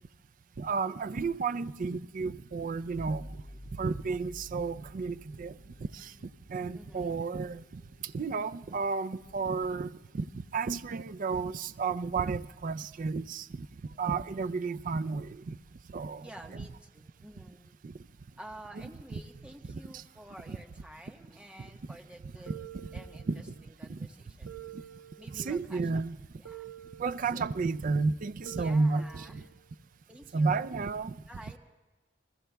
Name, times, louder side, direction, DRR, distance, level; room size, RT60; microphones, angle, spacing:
voice 1, 0.6-3.3 3.8-5.5 5.9-6.1 6.5-7.8 8.1-13.7 14.0-15.6 15.9-16.3 16.5-16.6 17.8-17.9 19.6-20.0 21.6-21.7 22.5-22.6 22.8-22.9 23.3-23.4 23.9-24.1 24.4-24.8 25.3-26.2 27.0-29.4 30.3-31.2, right 4 dB, 45° right, 0.4 m, -32 dB
sound 1, 2.6-12.0, equal, 80° left, 7.3 m, -53 dB
voice 2, 6.7-7.3 13.9-14.0 16.2-17.7 18.4-22.5 22.9-24.5 25.2-26.0 26.4-26.7 27.3-27.5 28.5-29.5 30.1-30.7 31.3-31.6, right 1 dB, 5° right, 1.2 m, -50 dB
sound 2, 22.5-23.6 24.5-25.6 26.4-27.6 28.4-29.6, right 12 dB, 85° right, 1.5 m, -48 dB
29.5 x 20.5 x 2.3 m
head